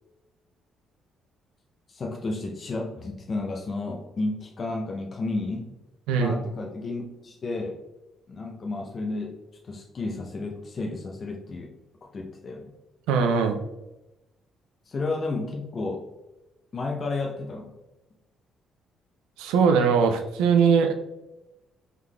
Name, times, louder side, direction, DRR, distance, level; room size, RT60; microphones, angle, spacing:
voice 1, 1.9-5.8 6.2-7.8 8.3-9.4 9.7-11.7 12.1-12.7 14.9-16.1 16.7-17.7, left 3 dB, 45° left, 1 dB, 0.6 m, -32 dB
voice 2, 13.1-13.6 19.4-20.9, right 6 dB, 80° right, 6 dB, 0.4 m, -21 dB
4.7 x 3.8 x 2.3 m, 0.98 s
supercardioid pair, 55°, 0 cm